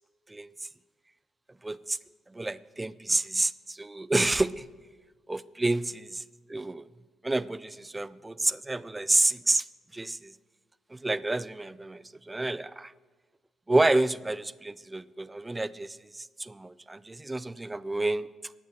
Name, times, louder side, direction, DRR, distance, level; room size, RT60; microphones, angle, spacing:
voice 1, 1.6-2.0 2.3-4.6 5.3-6.2 6.5-6.9 7.2-9.6 9.9-10.3 10.9-12.9 13.7-18.3, right 2 dB, 15° right, 18 dB, 0.4 m, -29 dB
12.0 x 8.1 x 9.1 m, 1.4 s
cardioid pair, 90°, 0 cm